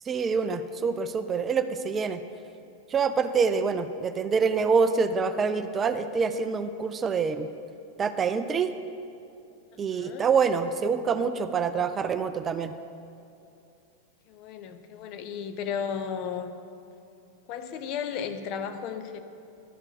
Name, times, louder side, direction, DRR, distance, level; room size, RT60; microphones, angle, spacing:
voice 1, 0.1-2.2 2.9-7.5 8.0-8.7 9.8-12.7, right 5 dB, 20° right, 10 dB, 0.3 m, -26 dB
voice 2, 9.9-10.3 14.3-16.5 17.5-19.2, left 7 dB, 40° left, 8 dB, 0.6 m, -34 dB
12.0 x 4.4 x 6.2 m, 2.6 s
figure-of-eight pair, 90°, 0 cm